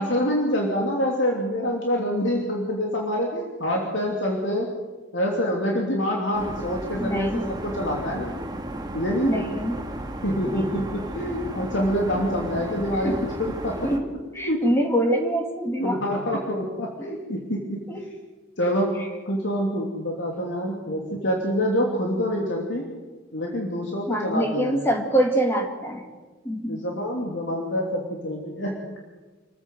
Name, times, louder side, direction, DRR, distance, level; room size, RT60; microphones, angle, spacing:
voice 1, 0.0-4.7 5.1-8.3 8.9-9.4 10.2-13.8 14.4-14.7 15.8-17.8 18.6-19.0 19.3-22.9 23.3-24.7 26.6-28.8, equal, 70° left, -1 dB, 3.0 m, -26 dB
sound 1, 6.3-14.0, right 1 dB, 20° right, 1.8 m, -34 dB
voice 2, 7.0-7.5 9.2-9.8 10.5-10.8 13.0-13.2 13.8-14.1 14.3-16.0 17.9-18.0 24.1-26.1 26.4-26.8, right 1 dB, 15° left, 3 dB, 2.4 m, -25 dB
26.5 x 15.0 x 7.9 m, 1.3 s
head